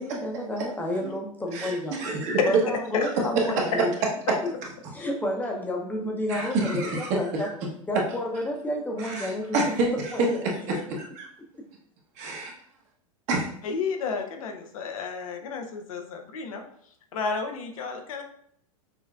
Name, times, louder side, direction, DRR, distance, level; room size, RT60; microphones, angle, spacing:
voice 1, 0.0-2.0 2.4-3.9 4.4-4.5 4.9-7.5 7.9-9.6 10.1-10.4 11.5-11.6, left 1 dB, 10° left, 1 dB, 0.7 m, -31 dB
voice 2, 2.0-2.4 6.3-7.1 9.0-9.9 10.7-11.2 12.2-12.5 13.3-13.4, right 2 dB, 45° right, -1 dB, 1.0 m, -28 dB
voice 3, 13.6-16.6 17.1-18.2, left 5 dB, 75° left, 4 dB, 0.7 m, -32 dB
5.8 x 2.1 x 2.3 m, 0.66 s
hypercardioid pair, 110°, 18 cm